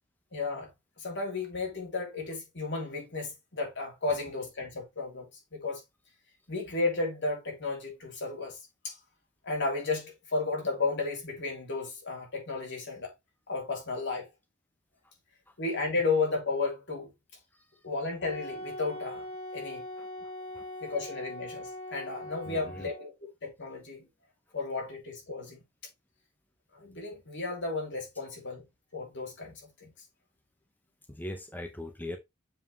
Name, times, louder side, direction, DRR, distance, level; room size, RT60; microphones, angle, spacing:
voice 1, 0.3-0.7 1.0-5.3 5.5-5.8 6.5-8.6 8.8-8.9 9.4-13.1 13.5-14.3 15.6-17.1 17.8-19.2 19.5-19.8 20.8-23.1 23.4-24.1 24.5-25.6 26.7-28.6 28.9-29.9, left 3 dB, 60° left, 3.1 m, -33 dB
Wind instrument woodwind instrument, 18.2-23.1, left 1 dB, 35° left, 2.6 m, -41 dB
voice 2, 22.5-22.9 31.1-32.2, left 1 dB, 10° left, 0.7 m, -41 dB
7.4 x 4.9 x 3.2 m
head